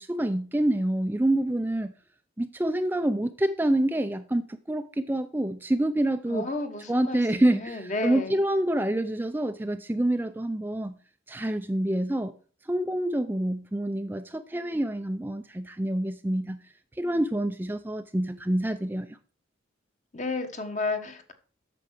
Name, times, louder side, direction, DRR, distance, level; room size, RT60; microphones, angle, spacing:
voice 1, 0.0-1.9 2.4-6.5 6.9-11.0 11.3-12.3 12.7-16.6 17.0-19.1, right 1 dB, 10° right, 0.4 m, -27 dB
voice 2, 6.3-8.4 20.1-21.3, left 3 dB, 40° left, 1.3 m, -32 dB
8.8 x 6.8 x 6.5 m
head